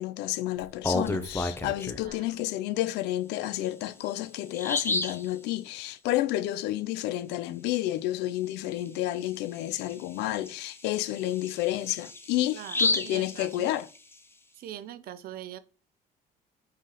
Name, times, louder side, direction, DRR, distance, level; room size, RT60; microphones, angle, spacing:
voice 1, 0.0-13.9, left 15 dB, 90° left, 0.4 m, -30 dB
Bird vocalization bird call bird song, 0.6-2.1 3.6-3.7 4.1-4.2 4.5-5.3 8.7-8.9 9.3-9.4 9.9-14.1, left 2 dB, 15° left, 0.5 m, -31 dB
voice 2, 2.0-2.5 12.5-13.7 14.5-15.6, right 12 dB, 60° right, 0.5 m, -42 dB
4.1 x 3.2 x 3.8 m
cardioid pair, 110°, 17 cm